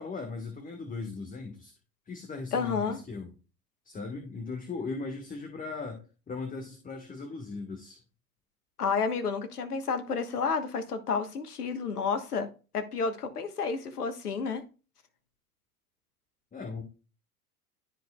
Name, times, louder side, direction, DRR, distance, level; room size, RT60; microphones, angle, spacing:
voice 1, 0.0-1.7 2.1-3.3 3.8-8.0 16.5-16.8, left 4 dB, 20° left, 1.5 m, -38 dB
voice 2, 2.5-3.0 8.8-12.5 12.7-14.6, left 5 dB, 80° left, 1.4 m, -30 dB
12.5 x 4.9 x 2.3 m
figure-of-eight pair, 80°, 45 cm